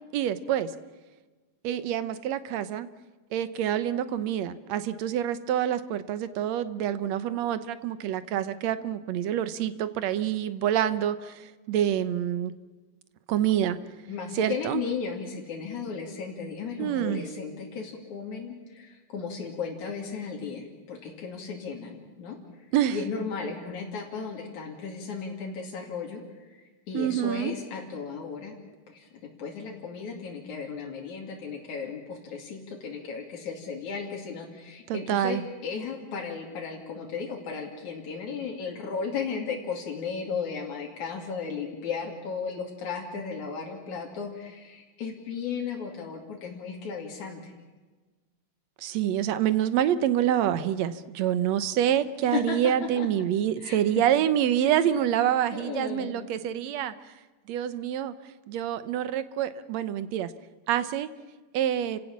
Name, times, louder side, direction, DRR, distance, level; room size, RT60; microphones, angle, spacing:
voice 1, 0.1-0.7 1.6-2.9 3.3-12.5 13.3-13.8 14.4-14.8 16.8-17.2 22.7-23.0 26.9-27.5 34.9-35.4 48.8-56.9 57.5-58.1 58.5-60.3 60.7-61.1 61.5-62.0, right 10 dB, 70° right, 13 dB, 2.1 m, -27 dB
voice 2, 14.1-22.4 22.9-26.5 26.9-28.6 28.9-29.1 29.4-47.5 52.3-53.1 53.6-53.8 54.6-54.9 55.5-56.2, left 5 dB, 80° left, -1 dB, 4.0 m, -35 dB
29.5 x 17.0 x 7.3 m, 1.3 s
omnidirectional pair, 3.4 m